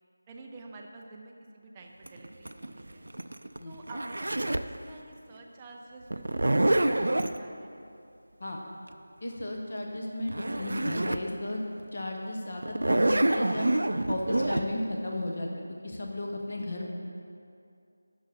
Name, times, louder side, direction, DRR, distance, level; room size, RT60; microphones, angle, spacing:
voice 1, 0.3-3.1 3.7-7.7, right 2 dB, 10° right, 0 dB, 0.4 m, -48 dB
Zipper (clothing), 2.1-4.8 6.1-7.4 10.0-10.1 10.3-11.3 11.8-11.9 12.6-14.6, right 1 dB, 80° right, 0.4 m, -27 dB
voice 2, 9.2-11.6 11.9-13.7 14.1-15.5 15.8-16.9, left 1 dB, 45° left, 0 dB, 0.8 m, -34 dB
8.8 x 6.5 x 4.0 m, 2.5 s
figure-of-eight pair, 175°, 0 cm